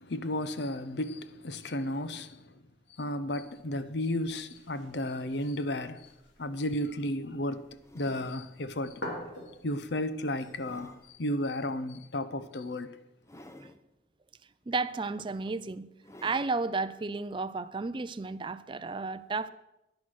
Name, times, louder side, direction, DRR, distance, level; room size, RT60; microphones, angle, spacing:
voice 1, 0.0-2.5 3.0-6.1 6.4-7.7 7.9-9.0 9.6-13.0, left 1 dB, 70° left, 0.8 m, -33 dB
sound 1, 3.3-11.1, left 1 dB, 90° left, 3.7 m, -48 dB
sound 2, 6.5-6.7 7.8-8.4 9.1-9.3 9.8-11.0 12.3-12.5 13.2-13.8 14.6-14.7 15.2-15.6 16.0-16.6 17.3-17.4, left 1 dB, 15° left, 0.8 m, -52 dB
voice 2, 14.7-15.9 16.2-19.5, right 3 dB, 25° right, 0.4 m, -32 dB
10.5 x 10.0 x 6.4 m
head